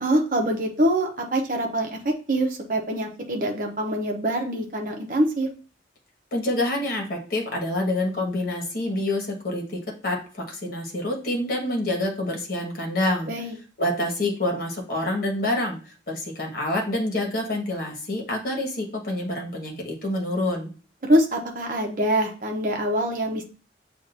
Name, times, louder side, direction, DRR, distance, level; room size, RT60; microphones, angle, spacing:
voice 1, 0.0-5.5 13.3-13.5 21.0-23.4, right 1 dB, 45° right, 2 dB, 0.9 m, -24 dB
voice 2, 6.3-10.2 10.5-13.3 13.8-20.7, left 1 dB, 50° left, -1 dB, 1.4 m, -27 dB
7.5 x 2.6 x 2.6 m, 0.37 s
head